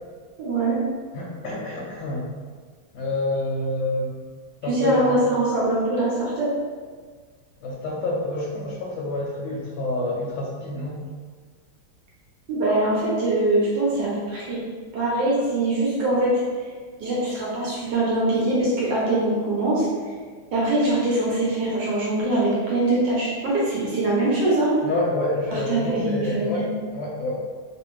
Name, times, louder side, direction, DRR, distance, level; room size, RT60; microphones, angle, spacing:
voice 1, 0.4-0.8 4.7-6.5 12.5-14.6 14.9-16.3 17.0-19.9 20.5-24.7 25.5-26.7, right 2 dB, 65° right, -6 dB, 1.3 m, -23 dB
voice 2, 1.1-2.3 2.9-4.1 4.6-5.2 7.6-11.0 24.8-27.4, left 2 dB, 75° left, -3 dB, 1.3 m, -28 dB
3.3 x 2.4 x 3.1 m, 1.6 s
omnidirectional pair, 2.4 m